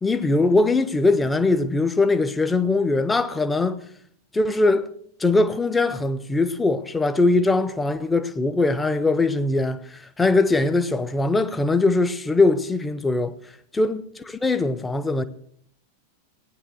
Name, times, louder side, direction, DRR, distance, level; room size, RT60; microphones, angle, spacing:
voice 1, 0.0-3.8 4.3-4.9 5.2-13.4 13.8-14.0 14.3-15.2, left 3 dB, 10° left, 0.9 m, -21 dB
17.5 x 9.8 x 6.3 m
figure-of-eight pair, 90°, 0 cm